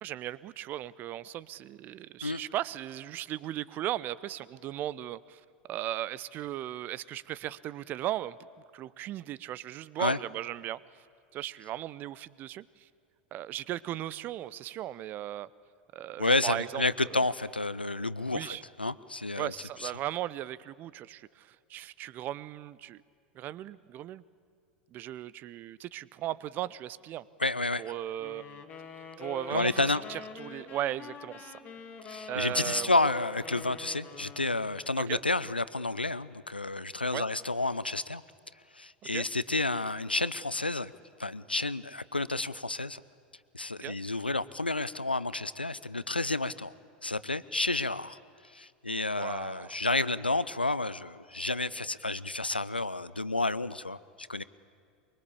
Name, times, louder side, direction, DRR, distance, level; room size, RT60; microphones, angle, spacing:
voice 1, 0.0-5.4 5.7-8.4 8.7-10.8 11.3-12.9 13.3-15.5 15.9-17.2 18.3-18.6 19.4-23.0 23.3-24.2 24.9-27.2 27.8-28.6 29.2-31.6 32.3-32.9 35.0-35.2 37.1-37.3 39.1-39.3 43.8-44.0 49.2-49.7, right 13 dB, 40° right, 20 dB, 0.6 m, -37 dB
voice 2, 16.2-19.5 19.8-19.9 27.4-27.9 29.5-30.0 32.1-38.2 38.8-40.9 41.2-43.0 43.5-46.7 47.0-48.2 48.5-54.4, left 2 dB, 90° left, 17 dB, 0.6 m, -30 dB
sound 1, 28.2-35.0, left 5 dB, 30° left, 2.2 m, -45 dB
23.5 x 22.5 x 8.6 m, 2.3 s
figure-of-eight pair, 85°, 5 cm